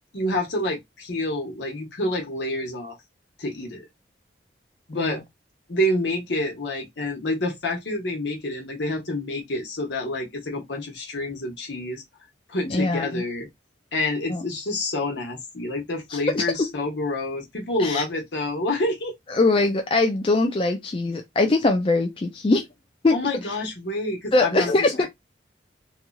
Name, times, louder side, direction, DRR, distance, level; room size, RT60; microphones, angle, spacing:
voice 1, 0.1-3.0 3.4-3.8 4.9-5.2 5.7-12.0 12.5-13.5 13.9-19.1 23.1-25.1, left 1 dB, 70° left, 1.1 m, -28 dB
voice 2, 12.7-13.2 14.3-14.4 16.1-16.4 17.8-18.0 19.3-22.7 23.0-23.2 24.3-25.1, left 2 dB, 30° left, 0.3 m, -22 dB
3.0 x 2.7 x 2.2 m
head